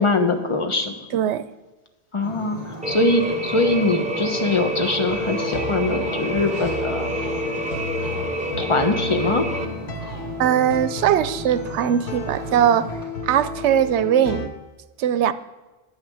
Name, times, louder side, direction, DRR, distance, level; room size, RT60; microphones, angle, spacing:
voice 1, 0.0-0.9 2.1-7.1 8.6-9.5, left 2 dB, 30° left, 5 dB, 1.1 m, -22 dB
voice 2, 1.1-1.4 10.4-12.9 13.2-14.5 15.0-15.3, right 9 dB, 85° right, 14 dB, 0.9 m, -20 dB
Ocean, 2.2-13.0, right 2 dB, 45° left, 3.4 m, -37 dB
sound 1, 2.8-9.7, equal, 5° right, 0.8 m, -28 dB
sound 2, 5.1-14.5, left 3 dB, 75° left, 1.4 m, -33 dB
10.5 x 5.8 x 8.6 m, 1.1 s
omnidirectional pair, 1.1 m